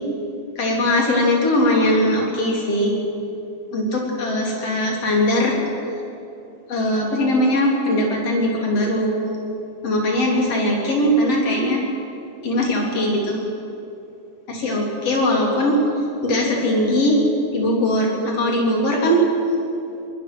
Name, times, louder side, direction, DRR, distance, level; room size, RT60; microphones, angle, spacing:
voice 1, 0.6-2.9 3.7-5.6 6.7-9.2 9.8-11.8 12.4-13.4 14.5-15.8 16.2-17.2 17.5-19.2, left 1 dB, 50° left, -1 dB, 4.4 m, -20 dB
22.0 x 20.5 x 6.3 m, 2.7 s
omnidirectional pair, 3.5 m